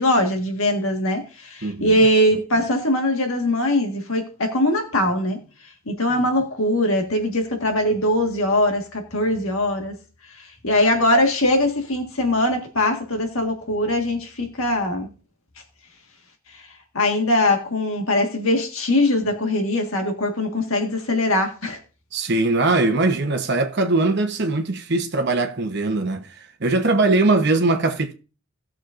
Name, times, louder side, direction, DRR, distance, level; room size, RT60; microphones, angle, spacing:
voice 1, 0.0-5.4 5.9-9.9 10.4-15.1 16.5-16.6 16.9-21.8, left 1 dB, 75° left, 1.7 m, -21 dB
voice 2, 1.6-2.0 22.1-26.3 26.6-28.1, right 2 dB, 50° right, 1.0 m, -21 dB
18.0 x 6.4 x 2.6 m
head